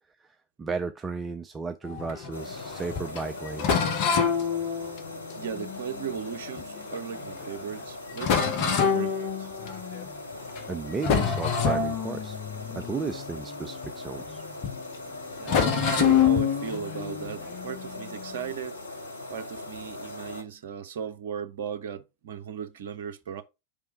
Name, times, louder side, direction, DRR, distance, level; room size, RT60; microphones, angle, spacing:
voice 1, 0.2-3.8 10.7-12.4 12.7-14.4, right 4 dB, 15° right, 0.4 m, -34 dB
sound 1, 1.9-6.8 7.4-7.5 7.8-7.9 8.2-10.1 10.5-10.7 11.0-14.4 14.6-14.8 15.4-18.5, left 7 dB, 40° left, 1.1 m, -27 dB
sound 2, 2.3-20.4, left 2 dB, 80° left, 1.1 m, -40 dB
voice 2, 4.7-5.0 5.3-9.5 15.4-18.8 19.3-23.4, right 8 dB, 55° right, 0.7 m, -37 dB
5.2 x 3.5 x 5.6 m
figure-of-eight pair, 90°, 0 cm